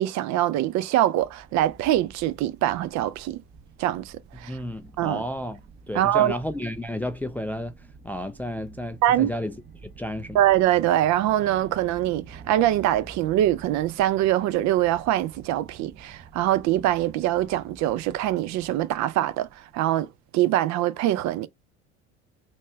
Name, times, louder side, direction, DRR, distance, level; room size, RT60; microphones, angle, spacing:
voice 1, 0.0-3.4 3.8-4.6 5.0-5.2 5.9-6.3 9.0-9.3 10.3-20.1 20.3-21.5, right 13 dB, 50° right, 0.5 m, -23 dB
sound 1, 1.2-20.2, right 5 dB, 30° right, 0.9 m, -48 dB
voice 2, 4.4-5.6 5.9-10.4, left 1 dB, 5° left, 0.3 m, -32 dB
4.1 x 2.4 x 3.2 m
hypercardioid pair, 75°, 36 cm